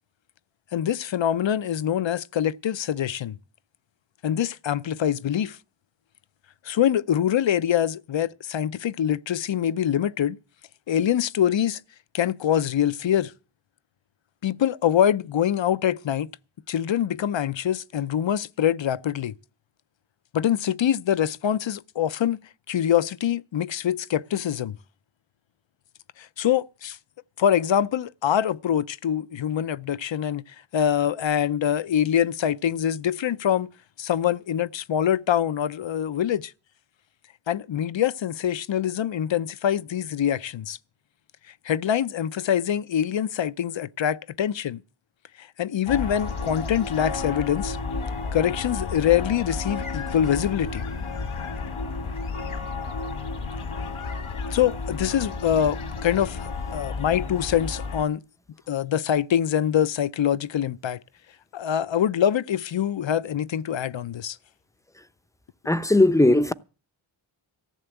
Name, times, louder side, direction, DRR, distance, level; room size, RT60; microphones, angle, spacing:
voice 1, 0.7-3.4 4.2-5.6 6.6-10.4 10.9-11.8 12.1-13.3 14.4-16.3 16.7-19.3 20.3-22.4 22.7-24.8 26.4-27.0 27.4-30.4 30.7-33.7 34.0-36.5 37.5-40.8 41.6-44.8 45.4-47.8 48.3-50.8 54.5-58.2 58.7-61.0 61.5-64.4, left 9 dB, 65° left, 0.7 m, -24 dB
sound 1, 45.9-58.0, left 4 dB, 85° left, 1.8 m, -32 dB
voice 2, 65.7-66.5, left 2 dB, 5° left, 0.7 m, -18 dB
15.0 x 6.8 x 9.0 m
wide cardioid pair, 65°, 49 cm